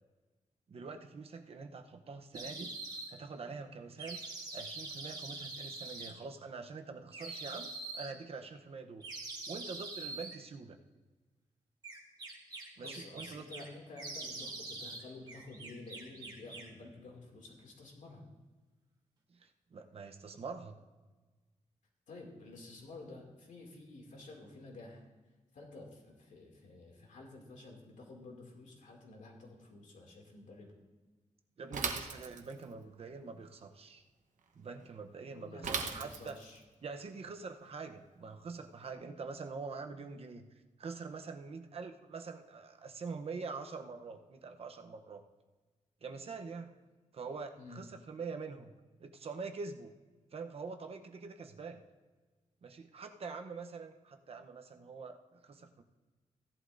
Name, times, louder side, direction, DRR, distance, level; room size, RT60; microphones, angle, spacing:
voice 1, 0.7-2.8 3.1-4.2 4.5-9.0 9.5-10.8 12.8-13.7 19.3-20.8 31.6-34.0 34.5-36.4 36.8-40.5 40.8-45.2 46.0-46.7 47.1-48.7 49.0-49.9 50.3-51.8 52.6-55.8, right 4 dB, 50° right, 6 dB, 0.8 m, -45 dB
sound 1, 2.3-3.1 4.0-6.1 7.1-8.1 9.0-10.4 11.8-13.7 14.0-15.0 15.3-16.7, right 3 dB, 30° right, 1.7 m, -44 dB
voice 2, 12.8-18.2 22.1-25.0 25.5-30.7 35.3-36.6 47.6-47.8, left 2 dB, 80° left, 0 dB, 2.4 m, -51 dB
Bicycle / Mechanisms, 31.7-32.7 35.6-36.6, right 5 dB, 80° right, 1.0 m, -37 dB
16.0 x 11.5 x 2.6 m, 1.3 s
wide cardioid pair, 175°, 13 cm